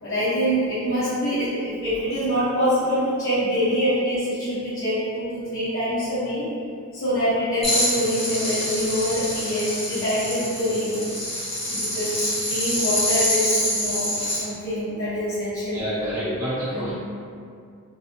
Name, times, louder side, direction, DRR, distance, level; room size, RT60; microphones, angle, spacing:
voice 1, 0.0-6.4 6.9-11.0 11.7-14.1 14.4-16.3 16.7-16.9, equal, 65° left, -17 dB, 0.9 m, -25 dB
sound 1, 7.6-14.4, left 1 dB, 30° left, 0.7 m, -26 dB
voice 2, 15.7-16.9, equal, 15° right, -13 dB, 0.7 m, -28 dB
2.4 x 2.3 x 2.7 m, 2.4 s
head